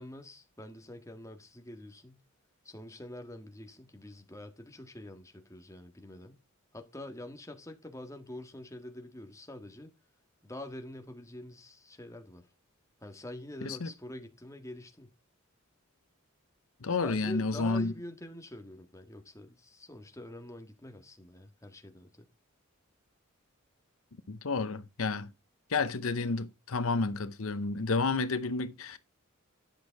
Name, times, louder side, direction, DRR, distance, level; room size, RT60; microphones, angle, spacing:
voice 1, 0.0-2.2 2.6-6.3 6.7-9.9 10.4-12.4 13.0-15.1 17.0-22.3, left 1 dB, 15° left, 1.6 m, -45 dB
voice 2, 16.8-17.9 24.3-25.3 25.7-29.0, left 3 dB, 75° left, 0.8 m, -30 dB
11.0 x 6.5 x 4.6 m
head